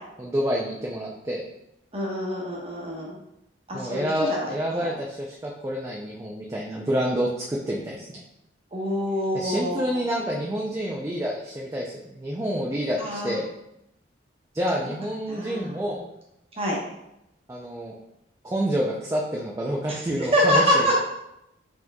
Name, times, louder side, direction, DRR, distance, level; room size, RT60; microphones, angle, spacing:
voice 1, 0.2-1.4 3.7-8.2 9.3-13.5 14.5-16.0 17.5-18.0 18.4-20.9, equal, 15° right, -3 dB, 0.3 m, -28 dB
voice 2, 1.9-3.2 3.7-4.5 4.8-4.9 8.7-10.1 13.0-13.4 15.3-15.9 16.5-16.8 19.9-20.9, equal, 30° right, -3 dB, 0.9 m, -26 dB
4.4 x 2.9 x 2.2 m, 0.83 s
head